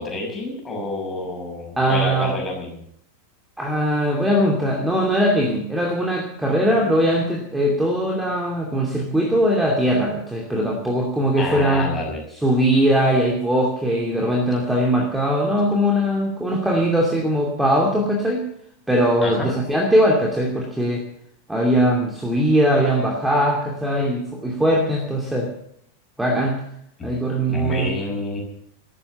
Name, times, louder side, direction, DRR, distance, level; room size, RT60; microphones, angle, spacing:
voice 1, 0.0-2.8 11.4-12.2 19.2-19.5 27.0-27.1 27.5-28.4, left 2 dB, 15° left, 1 dB, 6.0 m, -28 dB
voice 2, 1.8-2.3 3.6-11.9 12.4-18.4 18.9-21.0 21.5-25.5 26.2-26.6 27.0-27.9, equal, 5° right, -1 dB, 2.7 m, -20 dB
14.0 x 13.5 x 7.0 m, 0.69 s
figure-of-eight pair, 90°, 0 cm